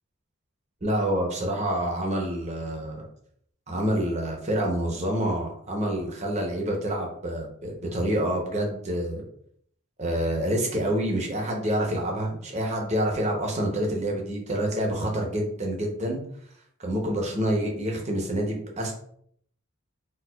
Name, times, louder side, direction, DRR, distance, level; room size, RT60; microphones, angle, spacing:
voice 1, 0.8-3.1 3.7-9.2 10.0-16.2 16.8-18.9, right 1 dB, 30° right, 0 dB, 0.7 m, -27 dB
4.3 x 2.3 x 2.2 m, 0.66 s
head